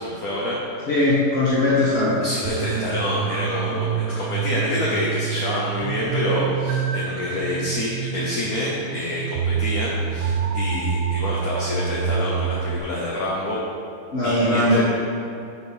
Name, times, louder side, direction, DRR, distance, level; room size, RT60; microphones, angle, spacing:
voice 1, 0.0-0.9 2.2-13.6 14.2-14.8, left 1 dB, 60° left, -5 dB, 1.4 m, -27 dB
voice 2, 0.9-2.2 14.1-14.8, left 1 dB, 40° left, -10 dB, 1.3 m, -19 dB
sound 1, 2.4-12.8, right 7 dB, 85° right, 1.3 m, -27 dB
5.5 x 5.2 x 6.1 m, 2.7 s
omnidirectional pair, 1.8 m